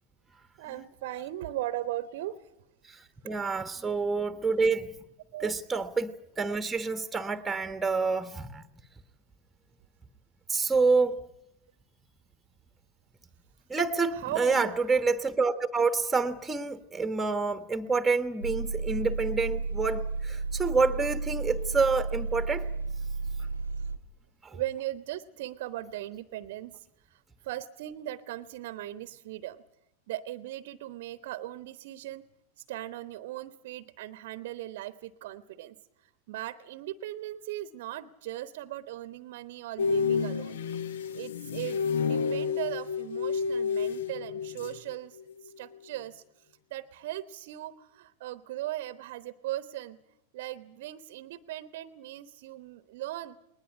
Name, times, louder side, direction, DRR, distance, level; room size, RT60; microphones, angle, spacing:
voice 1, 0.6-2.5 5.3-5.5 14.1-14.7 23.8-23.9 24.5-29.6 30.1-32.2 32.7-35.8 36.3-40.6 41.1-45.2 45.4-46.2 46.7-50.0 50.3-53.4, right 14 dB, 50° right, 14 dB, 1.0 m, -38 dB
voice 2, 3.2-4.9 5.4-8.6 10.5-11.2 13.7-22.7, right 4 dB, 10° right, 10 dB, 1.2 m, -27 dB
sound 1, 18.4-24.0, right 3 dB, 85° right, 0.8 m, -33 dB
sound 2, 39.8-44.9 45.2-45.5, left 5 dB, 60° left, 0.9 m, -30 dB
20.5 x 20.0 x 9.7 m, 0.81 s
figure-of-eight pair, 90°, 0 cm